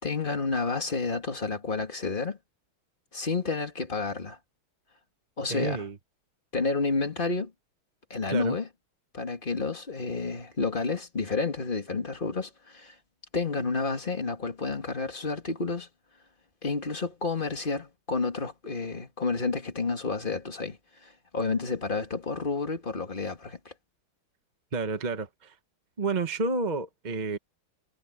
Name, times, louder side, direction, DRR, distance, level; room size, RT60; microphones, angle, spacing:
voice 1, 0.0-2.4 3.1-4.4 5.4-5.8 6.5-7.5 8.1-8.7 9.1-13.0 13.3-15.9 16.6-23.7, left 4 dB, 25° left, 2.5 m, -30 dB
voice 2, 5.5-5.9 8.3-8.6 24.7-25.5 26.0-27.4, right 3 dB, 30° right, 0.8 m, -30 dB
omnidirectional pair, 2.3 m